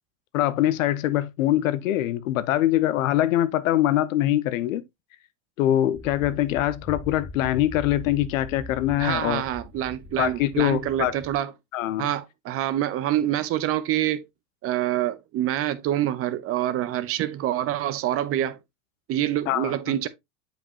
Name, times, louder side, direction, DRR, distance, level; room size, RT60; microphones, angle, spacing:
voice 1, 0.3-4.8 5.6-9.4 10.2-11.1 11.7-12.1 19.5-20.0, left 13 dB, 80° left, 0.8 m, -23 dB
sound 1, 5.9-11.4, left 2 dB, 5° left, 0.7 m, -41 dB
voice 2, 9.0-11.5 12.0-14.2 14.6-18.6 19.1-20.1, right 12 dB, 35° right, 0.7 m, -26 dB
7.7 x 5.2 x 2.8 m
supercardioid pair, 130°, 39 cm